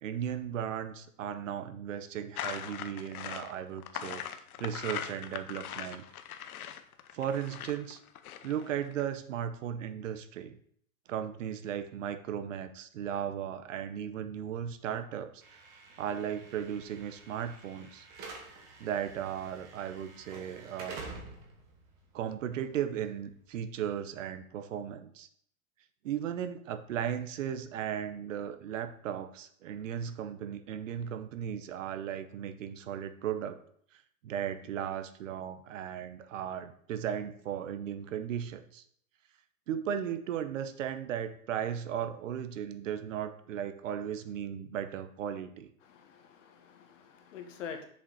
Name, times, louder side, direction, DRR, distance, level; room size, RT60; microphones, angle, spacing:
voice 1, 0.0-4.2 4.6-6.0 7.1-8.0 8.4-10.6 11.1-15.6 16.0-18.1 18.8-21.0 22.1-25.3 26.0-33.6 34.2-38.8 39.7-45.7, right 9 dB, 60° right, 10 dB, 0.8 m, -36 dB
sound 1, 2.4-9.0, left 9 dB, 85° left, 0.8 m, -40 dB
Slam / Alarm, 15.4-23.5, right 3 dB, 20° right, 1.1 m, -49 dB
voice 2, 45.9-47.9, left 7 dB, 60° left, 6 dB, 1.3 m, -45 dB
6.9 x 5.3 x 4.0 m, 0.62 s
hypercardioid pair, 165°, 43 cm